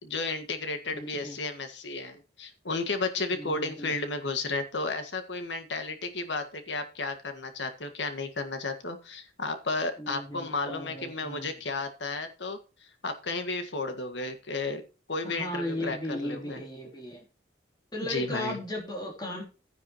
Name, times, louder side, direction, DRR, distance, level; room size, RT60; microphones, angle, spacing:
voice 1, 0.0-12.6 13.0-14.8 15.1-16.6 18.0-18.6, left 3 dB, 80° left, 7 dB, 1.8 m, -33 dB
voice 2, 0.9-1.4 3.3-4.0 10.0-11.5 15.2-17.2 17.9-19.4, left 1 dB, 20° left, 0 dB, 3.3 m, -36 dB
12.0 x 9.9 x 3.0 m, 0.32 s
head